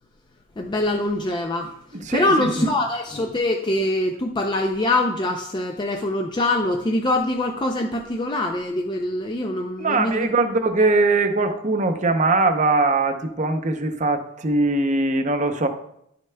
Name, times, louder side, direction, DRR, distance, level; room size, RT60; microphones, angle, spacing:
voice 1, 0.6-1.7 2.1-10.3, left 1 dB, 20° left, 2 dB, 0.4 m, -23 dB
voice 2, 1.9-2.8 9.8-15.7, right 3 dB, 35° right, 7 dB, 0.6 m, -21 dB
11.0 x 6.5 x 2.2 m, 0.75 s
head